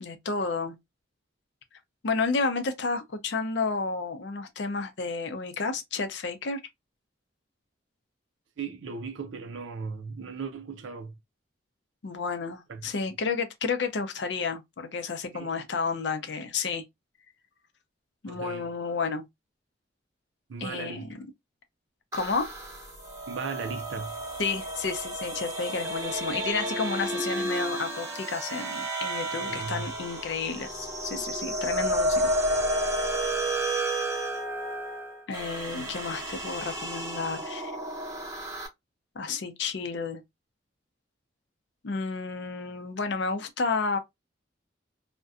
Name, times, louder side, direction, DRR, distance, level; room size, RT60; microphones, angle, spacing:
voice 1, 0.0-0.8 2.0-6.6 12.0-16.8 18.2-19.3 20.6-21.3 22.1-22.5 24.4-32.3 35.3-37.7 39.2-40.2 41.8-44.0, left 4 dB, 70° left, 0.5 m, -31 dB
voice 2, 8.6-11.2 12.7-12.8 15.3-15.5 18.3-18.7 20.5-21.1 23.3-24.2 29.3-29.9 35.8-36.0, right 5 dB, 90° right, 0.5 m, -37 dB
sound 1, 22.1-38.7, right 1 dB, 15° right, 0.7 m, -31 dB
2.5 x 2.1 x 2.3 m
head